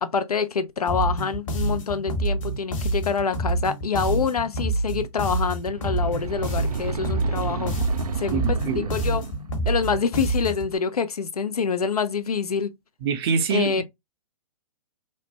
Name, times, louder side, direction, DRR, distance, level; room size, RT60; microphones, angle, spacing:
voice 1, 0.0-7.7 8.2-9.2 9.7-12.7 13.5-13.8, left 6 dB, 90° left, 0.5 m, -26 dB
sound 1, 0.9-10.7, right 2 dB, 60° left, 1.0 m, -27 dB
sound 2, 5.6-9.6, right 5 dB, 85° right, 0.4 m, -32 dB
voice 2, 8.3-8.9 13.0-13.8, right 6 dB, 40° right, 0.6 m, -25 dB
3.2 x 2.1 x 2.8 m
hypercardioid pair, 125°, 19 cm